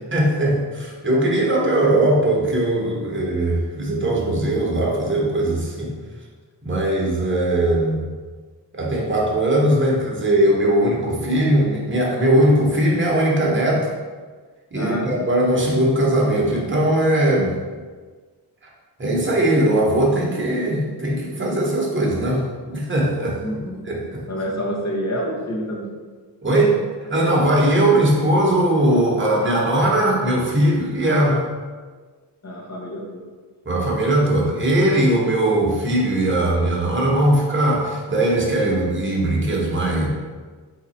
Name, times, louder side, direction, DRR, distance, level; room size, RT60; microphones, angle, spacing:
voice 1, 0.1-5.9 6.6-8.0 8.7-13.9 14.7-17.6 19.0-23.4 23.8-24.2 26.4-31.4 33.6-40.1, right 1 dB, 25° right, -3 dB, 1.1 m, -19 dB
voice 2, 14.7-15.3 23.4-23.8 24.3-25.9 32.4-33.2, equal, 35° left, -1 dB, 1.1 m, -28 dB
3.9 x 2.9 x 4.2 m, 1.4 s
cardioid pair, 75°, 44 cm